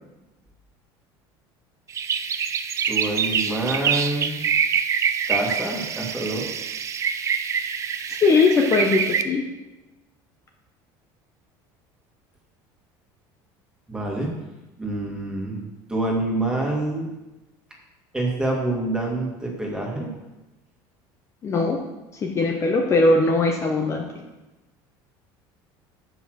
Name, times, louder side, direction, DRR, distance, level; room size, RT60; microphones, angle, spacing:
sound 1, 1.9-9.2, right 7 dB, 30° right, 0.5 m, -25 dB
voice 1, 2.9-4.4 5.3-6.5 13.9-14.3 14.8-17.1 18.1-20.1, right 2 dB, 10° right, -1 dB, 1.9 m, -26 dB
voice 2, 8.2-9.4 21.4-21.8 22.2-24.0, left 3 dB, 30° left, 1 dB, 0.8 m, -20 dB
7.0 x 5.6 x 6.3 m, 1.0 s
cardioid pair, 135°, 10 cm